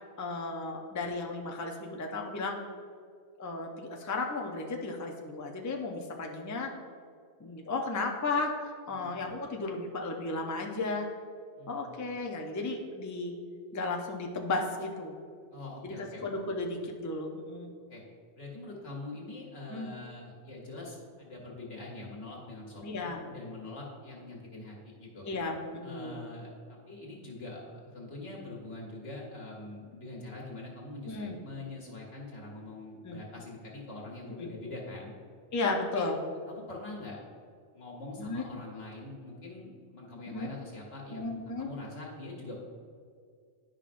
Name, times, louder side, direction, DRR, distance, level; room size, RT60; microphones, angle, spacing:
voice 1, 0.2-2.6 3.4-6.7 7.4-11.1 11.7-13.3 13.7-15.2 15.8-17.7 19.7-19.9 22.8-23.2 25.3-26.2 31.1-31.4 33.0-33.2 34.3-34.5 35.5-36.1 38.2-38.4 40.3-40.5 41.1-41.7, left 3 dB, 25° left, 2 dB, 0.4 m, -34 dB
voice 2, 8.9-9.2 11.6-11.9 15.5-16.2 17.9-18.0 18.4-25.3 25.8-35.1 35.9-36.1 36.5-37.2 37.7-42.5, left 2 dB, 90° left, -3 dB, 1.8 m, -44 dB
10.5 x 5.3 x 2.5 m, 2.2 s
omnidirectional pair, 1.2 m